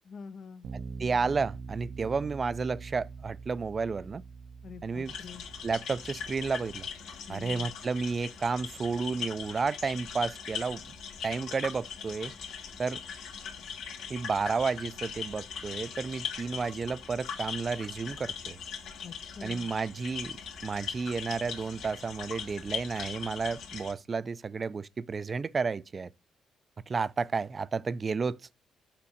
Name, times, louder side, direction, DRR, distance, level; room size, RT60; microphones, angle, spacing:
voice 1, 0.0-0.7 4.6-5.4 7.3-7.7 19.0-19.7, left 6 dB, 55° left, 0.7 m, -45 dB
Bass guitar, 0.6-6.9, right 4 dB, 70° right, 0.7 m, -44 dB
voice 2, 0.7-4.2 4.8-5.1 5.6-6.9 7.3-10.8 11.2-12.3 12.8-13.0 14.1-18.6 19.4-26.1 26.9-28.4, right 4 dB, 35° right, 0.4 m, -32 dB
sound 1, 5.0-23.9, left 6 dB, 85° left, 1.7 m, -40 dB
6.0 x 5.9 x 6.3 m
cardioid pair, 90°, 0 cm